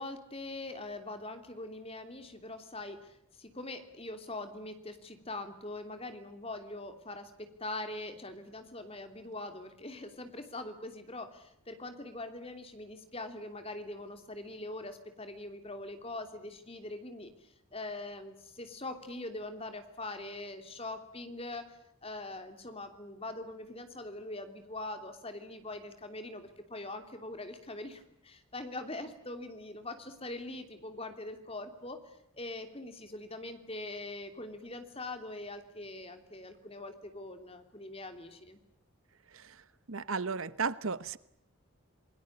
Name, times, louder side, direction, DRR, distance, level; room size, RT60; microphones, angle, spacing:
voice 1, 0.0-38.6, left 2 dB, 25° left, 7 dB, 3.0 m, -43 dB
voice 2, 39.9-41.2, right 5 dB, 70° right, 16 dB, 1.0 m, -34 dB
28.5 x 20.5 x 8.7 m, 0.80 s
head